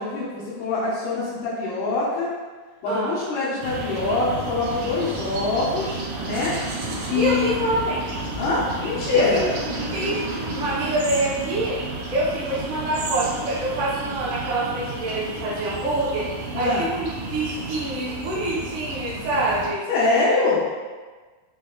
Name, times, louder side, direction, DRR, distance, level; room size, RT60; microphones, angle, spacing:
voice 1, 0.0-2.3 2.8-6.6 7.1-7.5 8.4-9.4 16.5-16.9 19.9-20.6, left 3 dB, 90° left, -11 dB, 2.4 m, -24 dB
sound 1, 3.6-19.7, right 2 dB, 90° right, 1.4 m, -32 dB
voice 2, 7.1-8.1 9.2-9.4 9.9-11.8 12.1-19.9 20.3-20.4, right 1 dB, 75° right, -7 dB, 1.1 m, -26 dB
5.6 x 2.1 x 2.3 m, 1.4 s
omnidirectional pair, 3.5 m